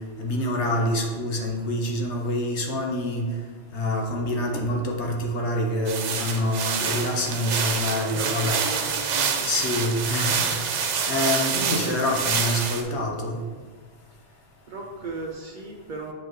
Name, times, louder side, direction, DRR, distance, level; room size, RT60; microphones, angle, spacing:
voice 1, 0.2-3.2 3.7-8.6 9.4-10.8 11.1-13.4, left 1 dB, 70° left, 1 dB, 1.2 m, -26 dB
sound 1, 5.9-12.8, right 6 dB, 75° right, 1.0 m, -27 dB
voice 2, 8.1-9.7 14.3-16.1, right 3 dB, 50° right, 1 dB, 0.7 m, -37 dB
7.7 x 4.5 x 3.1 m, 1.5 s
omnidirectional pair, 1.2 m